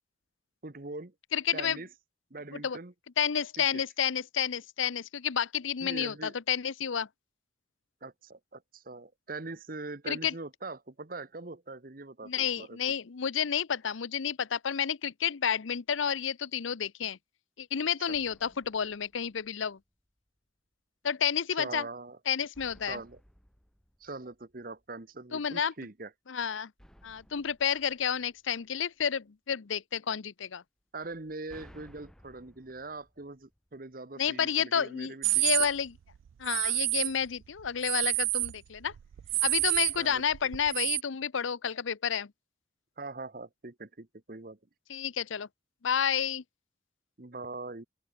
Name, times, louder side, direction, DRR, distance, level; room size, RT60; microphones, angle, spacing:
voice 1, 0.6-1.1 1.5-1.9 2.3-2.9 3.6-3.8 5.8-6.3 8.0-12.8 18.1-18.2 21.6-22.2 22.8-23.2 24.0-26.1 30.9-35.4 40.0-40.5 43.0-44.6 47.2-47.8, right 3 dB, 45° right, 1.1 m, -42 dB
voice 2, 1.3-1.8 2.5-2.8 3.2-7.1 10.1-10.3 12.2-17.2 17.6-19.8 21.0-21.9 22.3-23.0 25.3-25.7 26.3-26.7 27.0-30.6 34.2-36.0 36.4-38.9 39.4-42.3 44.9-45.5 45.8-46.4, left 8 dB, 85° left, 0.7 m, -30 dB
sound 1, 18.1-20.0 22.5-25.0 26.8-29.0 31.0-34.1, equal, 5° left, 1.6 m, -59 dB
sound 2, 35.2-35.7 36.4-37.1 37.6-38.6 38.9-41.0, right 24 dB, 85° right, 0.3 m, -28 dB
open air
head